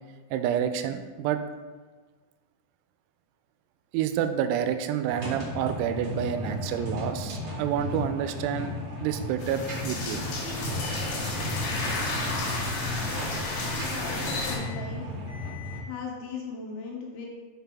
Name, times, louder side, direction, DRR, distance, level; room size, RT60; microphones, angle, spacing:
voice 1, 0.3-1.4 3.9-8.7 9.0-10.2, right 9 dB, 85° right, 8 dB, 3.2 m, -28 dB
sound 1, 5.1-15.8, left 1 dB, 70° right, 1.0 m, -35 dB
sound 2, 9.4-14.6, left 2 dB, 65° left, 2.6 m, -32 dB
Alarm, 11.3-11.8 12.3-12.8 13.3-13.8 14.3-14.8 15.3-15.8, left 11 dB, 50° left, 1.9 m, -46 dB
voice 2, 12.9-13.4 13.8-15.0 15.8-17.3, left 5 dB, 80° left, -1 dB, 2.9 m, -38 dB
6.6 x 6.0 x 3.5 m, 1.4 s
omnidirectional pair, 6.0 m